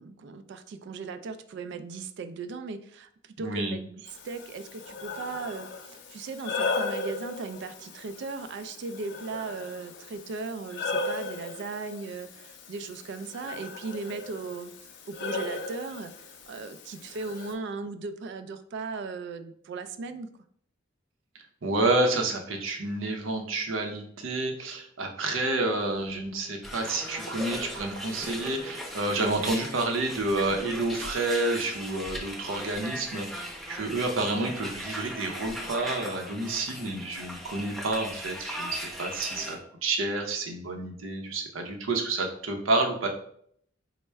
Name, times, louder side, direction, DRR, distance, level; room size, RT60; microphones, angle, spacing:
voice 1, 0.0-20.3, right 4 dB, 60° right, 10 dB, 0.3 m, -37 dB
voice 2, 3.4-3.8 21.6-43.1, right 2 dB, 90° right, 4 dB, 0.7 m, -29 dB
Breathing, 4.1-17.5, left 3 dB, 60° left, 0.5 m, -37 dB
sound 1, 26.6-39.6, equal, ahead, 0.6 m, -38 dB
4.3 x 2.1 x 3.3 m, 0.65 s
head